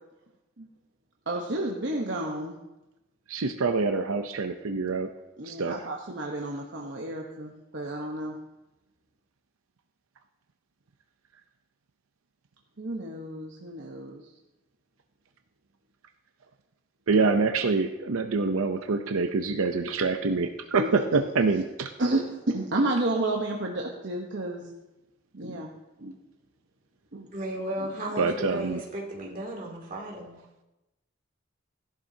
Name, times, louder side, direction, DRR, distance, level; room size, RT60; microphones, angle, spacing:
voice 1, 1.3-2.6 5.4-8.4 12.8-14.2 20.8-20.9 22.0-24.7 25.3-25.7 26.0-26.1 27.1-27.3, right 2 dB, 60° right, -1 dB, 1.1 m, -31 dB
voice 2, 3.3-5.1 5.4-5.8 17.1-21.9 28.2-28.8, right 4 dB, 90° right, 6 dB, 0.7 m, -26 dB
voice 3, 27.3-30.4, right 1 dB, 40° right, -2 dB, 2.6 m, -35 dB
17.0 x 11.5 x 2.8 m, 1.0 s
head